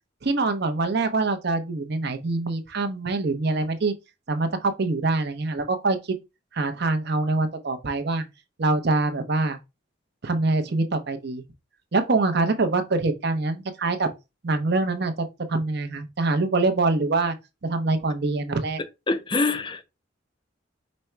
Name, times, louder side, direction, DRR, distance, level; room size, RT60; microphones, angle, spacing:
voice 1, 0.2-3.9 4.3-6.0 6.5-8.2 8.6-9.6 10.2-11.4 11.9-14.1 14.4-15.1 15.5-17.3 17.6-18.8, right 3 dB, 55° right, 0.7 m, -24 dB
voice 2, 19.1-19.8, left 3 dB, 25° left, 0.5 m, -24 dB
5.2 x 2.1 x 4.4 m
head